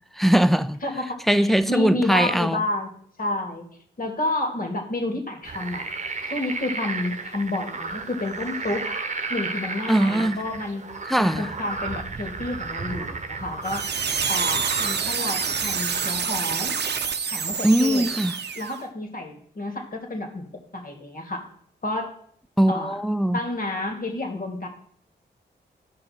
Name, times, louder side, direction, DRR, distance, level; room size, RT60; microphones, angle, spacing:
voice 1, 0.1-0.8 1.3-2.6 9.9-10.4 11.1-11.5 17.6-18.4 22.6-23.4, right 1 dB, ahead, 0.5 m, -20 dB
voice 2, 0.8-2.9 3.2-3.7 4.0-5.9 6.3-8.9 9.3-10.8 11.2-13.8 14.3-16.7 17.3-18.1 18.6-20.5 20.7-21.5 21.8-22.1 22.7-23.0 23.3-24.7, left 2 dB, 45° left, 2.3 m, -30 dB
sound 1, 5.4-16.1, right 3 dB, 40° right, 1.0 m, -33 dB
sound 2, 13.6-18.8, right 6 dB, 60° right, 0.8 m, -27 dB
14.0 x 5.2 x 4.4 m
cardioid pair, 65°, 19 cm